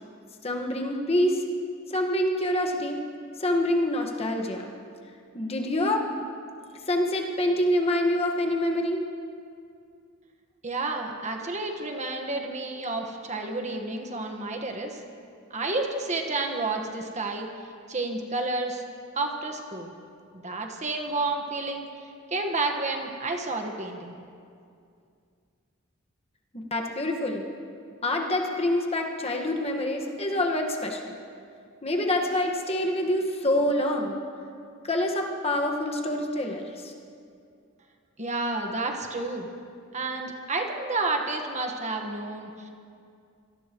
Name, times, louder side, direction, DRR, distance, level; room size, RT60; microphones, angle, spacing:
voice 1, 0.4-1.4 1.9-3.0 3.4-4.7 5.3-6.1 6.9-9.1 26.5-27.5 28.0-31.2 31.8-34.2 34.8-36.9, left 1 dB, 30° left, 1 dB, 1.5 m, -26 dB
voice 2, 10.6-15.0 15.5-17.5 17.9-18.8 19.1-19.9 20.4-21.9 22.3-24.1 38.2-39.5 39.9-42.7, right 3 dB, 35° right, 3 dB, 1.4 m, -30 dB
25.5 x 18.5 x 3.1 m, 2.4 s
head